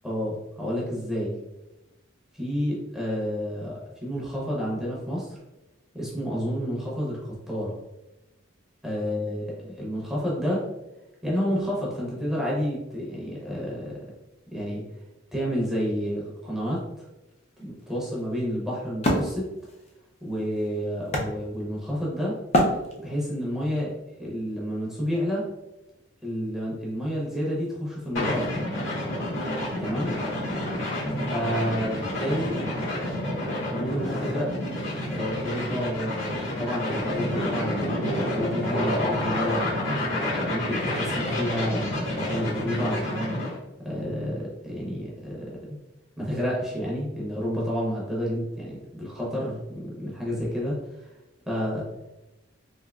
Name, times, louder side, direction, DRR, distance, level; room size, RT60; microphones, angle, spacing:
voice 1, 0.0-1.4 2.3-5.4 5.9-7.8 8.8-10.6 11.2-14.0 14.5-14.8 15.3-17.1 17.6-19.5 20.2-22.4 23.0-25.5 26.2-28.6 29.8-30.1 31.3-32.6 32.8-34.5 35.0-39.8 40.3-43.5 43.8-45.6 46.2-51.1 51.5-51.8, equal, ahead, -6 dB, 0.7 m, -30 dB
Wood, 17.3-22.0 22.5-23.4, equal, 35° left, 0.4 m, -28 dB
sound 1, 28.1-43.6, left 1 dB, 65° left, 1.2 m, -29 dB
3.4 x 2.7 x 2.3 m, 0.98 s
head